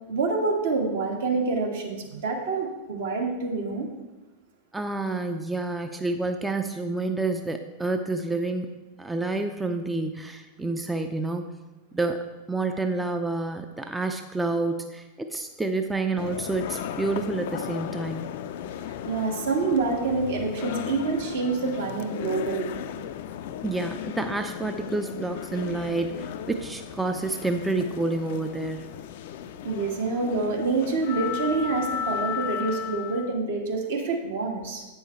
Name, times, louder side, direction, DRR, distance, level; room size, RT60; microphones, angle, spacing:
voice 1, 0.1-3.9 19.0-23.0 29.6-34.9, right 3 dB, 60° right, 1 dB, 1.4 m, -27 dB
voice 2, 4.7-8.7 9.0-11.5 11.9-18.3 23.6-28.8, right 2 dB, 10° right, 6 dB, 0.4 m, -29 dB
sound 1, 16.2-33.3, left 9 dB, 55° left, 0.4 m, -35 dB
8.7 x 5.6 x 4.3 m, 1.1 s
figure-of-eight pair, 90°, 0 cm